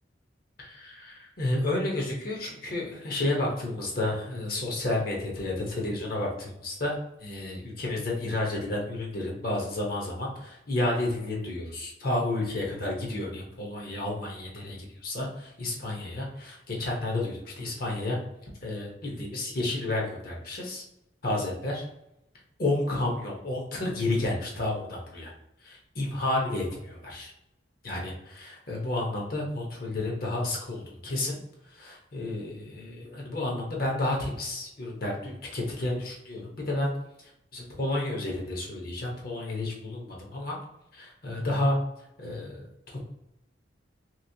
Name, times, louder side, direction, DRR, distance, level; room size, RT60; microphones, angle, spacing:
voice 1, 0.6-6.9 7.2-18.2 18.6-20.8 21.2-21.9 22.6-25.3 25.6-27.3 27.8-31.4 31.7-36.9 37.2-40.6 40.9-41.8 42.2-42.7, left 2 dB, 50° left, -1 dB, 0.8 m, -31 dB
3.0 x 2.9 x 2.7 m, 0.86 s
head